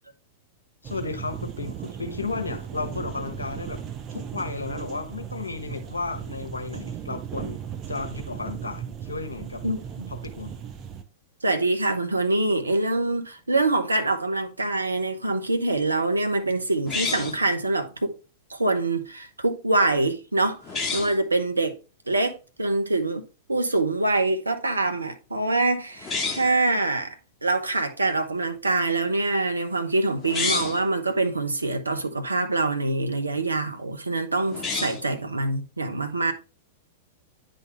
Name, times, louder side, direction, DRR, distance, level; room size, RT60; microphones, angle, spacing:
voice 1, 0.8-3.8 4.1-7.6 7.9-9.6 10.1-10.5, left 3 dB, 80° left, 1.1 m, -33 dB
sound 1, 0.8-11.0, right 8 dB, 30° right, 0.8 m, -37 dB
voice 2, 9.6-10.1 11.4-18.1 18.5-20.6 20.9-21.8 22.1-23.2 23.5-27.2 27.4-36.3, right 2 dB, 85° right, 0.9 m, -25 dB
sound 2, 16.9-17.5 20.6-21.2 26.0-26.6 30.2-30.9 34.5-35.1, left 4 dB, 20° left, 1.5 m, -29 dB
9.7 x 3.9 x 3.4 m
figure-of-eight pair, 100°, 0 cm